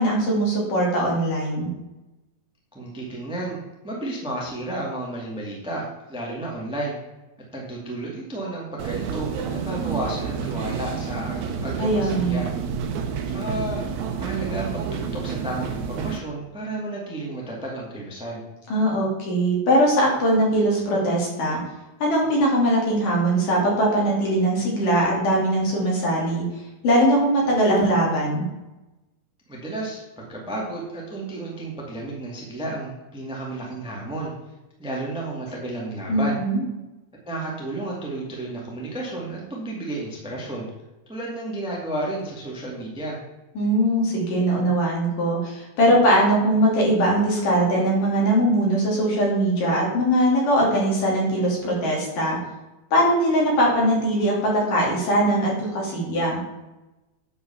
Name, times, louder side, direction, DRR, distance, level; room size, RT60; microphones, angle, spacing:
voice 1, 0.0-1.7 11.8-12.4 18.7-21.6 22.0-26.4 26.8-28.5 36.1-36.6 43.6-52.4 52.9-56.4, right 1 dB, 55° left, -3 dB, 4.2 m, -21 dB
voice 2, 2.7-7.0 7.5-12.5 13.3-13.8 14.2-18.4 29.5-34.3 34.8-36.4 37.2-40.7 41.1-43.2, right 2 dB, ahead, -3 dB, 1.1 m, -32 dB
sound 1, 8.8-16.2, right 6 dB, 85° right, 1.5 m, -29 dB
9.2 x 5.6 x 7.1 m, 1.0 s
omnidirectional pair, 4.6 m